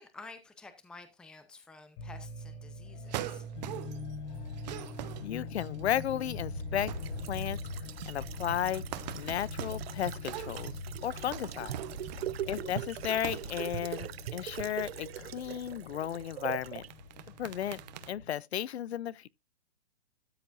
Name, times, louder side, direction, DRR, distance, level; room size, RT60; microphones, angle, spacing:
voice 1, 0.0-3.4 12.4-12.7, left 3 dB, 5° left, 0.7 m, -51 dB
sound 1, 2.0-18.3, left 2 dB, 45° left, 5.5 m, -43 dB
sound 2, 3.1-4.1 4.5-6.4 6.7-7.4 7.7-12.6 13.1-13.6 13.8-14.2 16.6-18.1, right 13 dB, 40° right, 0.9 m, -43 dB
voice 2, 5.2-6.9 7.3-7.6 8.1-8.8 9.1-10.7 11.0-11.8 12.5-16.8 17.4-17.8 18.1-19.3, left 10 dB, 85° left, 0.6 m, -34 dB
sound 3, 6.5-16.9 17.2-17.3, right 12 dB, 70° right, 0.6 m, -42 dB
13.0 x 7.0 x 2.5 m
hypercardioid pair, 150°, 32 cm